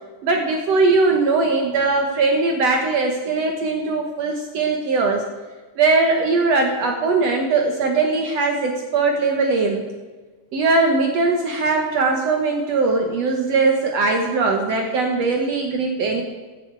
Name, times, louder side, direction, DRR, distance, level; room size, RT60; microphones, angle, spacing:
voice 1, 0.2-5.2 5.8-9.8 10.5-16.2, right 3 dB, 75° right, 3 dB, 1.5 m, -20 dB
15.5 x 12.0 x 4.7 m, 1.3 s
omnidirectional pair, 4.7 m